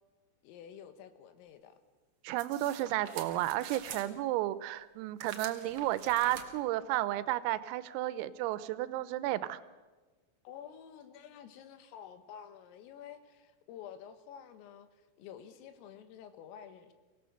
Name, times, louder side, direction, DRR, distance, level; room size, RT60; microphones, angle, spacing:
voice 1, 0.4-1.8 10.5-16.9, left 9 dB, 80° left, 9 dB, 4.0 m, -50 dB
voice 2, 2.3-9.6, right 15 dB, 90° right, 15 dB, 3.5 m, -32 dB
sound 1, 2.4-4.1 5.2-6.4, right 7 dB, 70° right, 1.8 m, -46 dB
24.5 x 17.5 x 6.5 m, 1.3 s
omnidirectional pair, 5.9 m